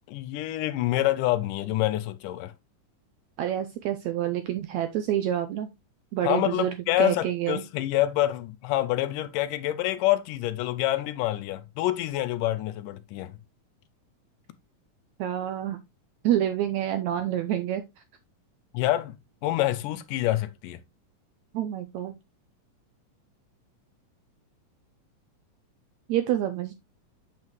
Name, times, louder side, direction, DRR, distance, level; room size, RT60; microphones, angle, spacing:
voice 1, 0.1-2.5 6.2-13.4 18.7-19.2 19.4-20.8, left 14 dB, 80° left, 2.2 m, -27 dB
voice 2, 3.4-5.7 6.1-7.6 15.2-15.8 16.2-17.8 21.5-22.1 26.1-26.7, right 11 dB, 85° right, 1.6 m, -27 dB
7.4 x 6.3 x 3.0 m
omnidirectional pair, 3.8 m